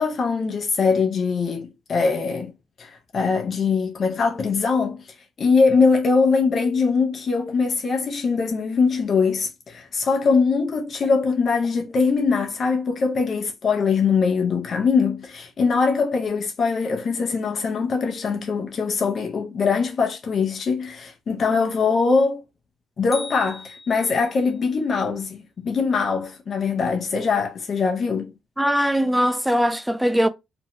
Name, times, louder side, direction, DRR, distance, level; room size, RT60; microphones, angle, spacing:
voice 1, 0.0-2.5 2.8-22.4 23.0-28.3, left 5 dB, 50° left, 0.5 m, -22 dB
sound 1, 23.1-24.5, left 2 dB, 20° left, 0.8 m, -39 dB
voice 2, 28.6-30.3, equal, 5° right, 0.4 m, -20 dB
2.5 x 2.1 x 2.8 m
cardioid pair, 90°, 0 cm